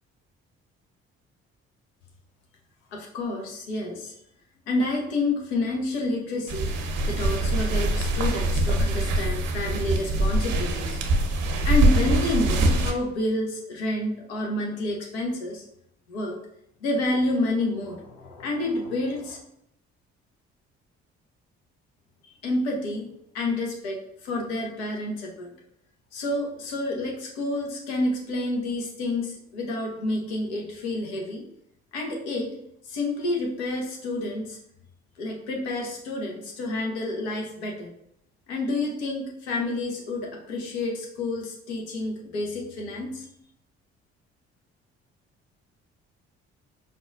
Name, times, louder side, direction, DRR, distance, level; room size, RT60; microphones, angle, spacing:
voice 1, 2.9-4.1 4.7-6.7 7.1-11.0 11.6-15.6 16.1-16.4 16.8-19.4 22.4-23.1 23.3-25.5 26.1-31.5 31.9-34.6 35.2-37.9 38.5-43.3, left 2 dB, 85° left, 0 dB, 0.6 m, -29 dB
sound 1, 6.5-12.9, right 1 dB, 70° right, 0.7 m, -23 dB
5.2 x 2.1 x 2.4 m, 0.76 s
hypercardioid pair, 45°, 32 cm